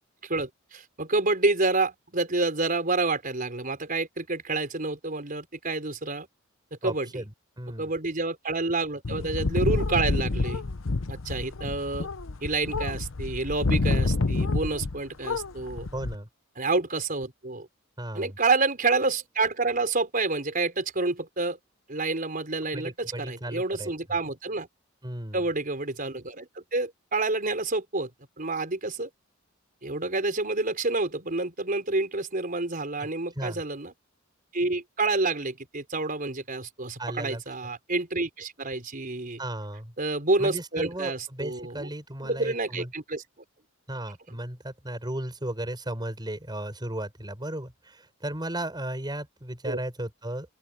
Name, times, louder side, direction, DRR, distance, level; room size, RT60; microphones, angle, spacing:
voice 1, 0.0-6.3 6.8-7.2 7.8-10.6 11.1-12.1 12.4-15.9 16.6-17.7 18.1-21.6 21.9-24.7 25.3-28.1 28.4-29.1 29.8-33.9 34.5-39.4 40.0-41.9 42.2-43.2 49.6-49.8, right 3 dB, 45° right, 4.7 m, -28 dB
voice 2, 6.8-7.3 7.6-7.9 15.9-16.3 18.0-18.4 22.7-23.9 25.0-25.4 33.0-33.1 33.4-33.6 37.0-37.4 39.4-39.9 40.4-42.9 43.9-50.5, right 1 dB, 20° right, 7.3 m, -35 dB
sound 1, 9.0-15.0 15.2-16.1, left 3 dB, 75° left, 0.9 m, -28 dB
open air
head